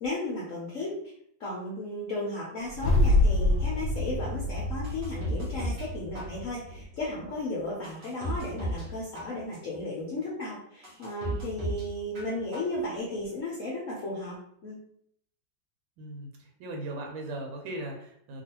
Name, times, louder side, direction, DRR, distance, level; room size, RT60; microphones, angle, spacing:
voice 1, 0.0-0.9 1.4-14.4 14.6-14.8, left 2 dB, 65° left, -5 dB, 0.8 m, -35 dB
sound 1, 2.7-7.0, left 2 dB, 90° left, 1.4 m, -26 dB
sound 2, 4.8-5.9 6.1-6.8 7.3-7.4 7.8-8.9 9.1-9.8 10.3-10.4 10.8-11.9 12.1-12.8 13.1-13.2, right 1 dB, 70° right, 0.5 m, -35 dB
voice 2, 16.0-18.4, right 1 dB, 85° right, 2 dB, 1.4 m, -38 dB
3.0 x 2.5 x 2.8 m, 0.67 s
omnidirectional pair, 2.1 m